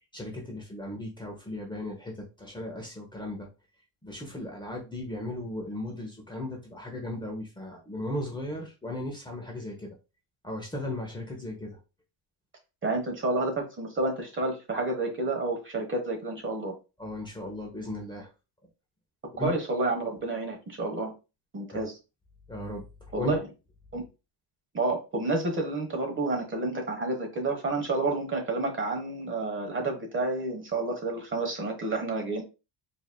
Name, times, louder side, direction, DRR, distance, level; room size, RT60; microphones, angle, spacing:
voice 1, 0.1-3.5 4.0-9.9 10.4-11.8 17.0-18.3 19.3-19.5 21.7-21.9 22.5-22.8 23.2-23.4, left 1 dB, 10° left, 0 dB, 1.0 m, -36 dB
voice 2, 12.8-16.7 19.4-21.1 21.5-21.9 23.1-23.4 23.9-24.0 24.7-32.4, right 2 dB, 30° right, 3 dB, 1.2 m, -30 dB
4.7 x 2.8 x 2.2 m, 0.29 s
cardioid pair, 110°, 41 cm